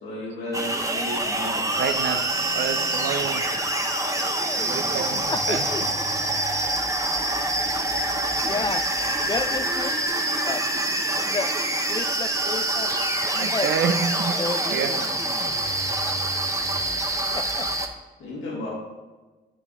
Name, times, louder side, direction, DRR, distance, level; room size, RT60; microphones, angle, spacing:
voice 1, 0.0-1.7 18.2-18.7, left 1 dB, 85° left, -5 dB, 1.9 m, -33 dB
sound 1, 0.5-17.9, right 1 dB, 15° right, 0.9 m, -26 dB
voice 2, 1.8-2.2 2.5-3.5 4.7-5.7 13.3-14.4 14.7-14.9, right 6 dB, 70° right, 8 dB, 0.7 m, -28 dB
voice 3, 5.3-5.9 8.4-8.9 9.3-9.9 10.4-10.6 11.2-11.5 11.9-12.9 13.4-13.7 14.4-14.7 17.3-17.7, left 4 dB, 25° left, 14 dB, 0.3 m, -30 dB
8.4 x 5.1 x 3.7 m, 1.2 s
supercardioid pair, 55°, 19 cm